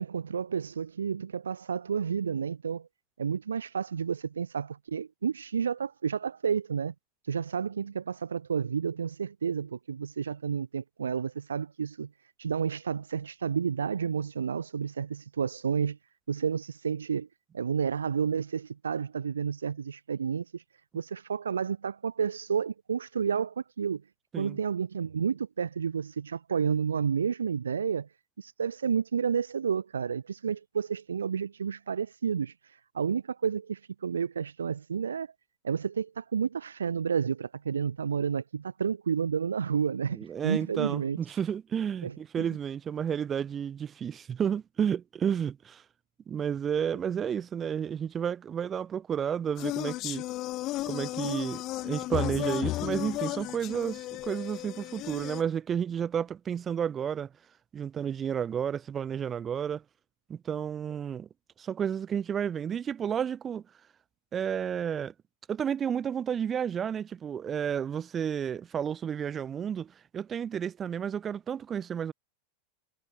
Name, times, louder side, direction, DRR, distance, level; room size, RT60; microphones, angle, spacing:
voice 1, 0.0-2.9 3.2-6.9 7.3-12.1 12.4-16.0 16.3-17.3 17.5-20.6 20.9-24.0 24.3-28.1 28.4-32.5 32.9-35.3 35.6-41.2 42.0-42.6, right 6 dB, 70° right, 0.5 m, -31 dB
voice 2, 40.1-45.8 46.3-50.3 50.9-57.3 57.7-59.8 60.3-61.3 61.6-63.6 64.3-65.1 65.5-72.1, right 8 dB, 25° right, 2.5 m, -31 dB
sound 1, 49.6-55.4, left 17 dB, 35° left, 0.4 m, -34 dB
figure-of-eight pair, 90°, 0 cm